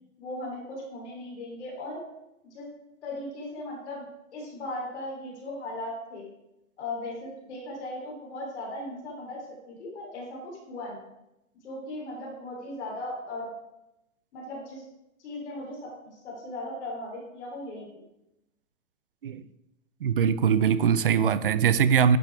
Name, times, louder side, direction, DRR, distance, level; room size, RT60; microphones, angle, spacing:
voice 1, 0.2-2.0 2.4-2.7 3.0-4.1 4.3-6.3 6.8-11.1 11.6-13.5 14.3-14.8 15.2-15.9 16.2-18.0, left 1 dB, 55° left, 3.6 m, -37 dB
voice 2, 20.0-22.2, right 7 dB, 45° right, 0.4 m, -22 dB
11.0 x 7.4 x 3.5 m
hypercardioid pair, 170°, 42 cm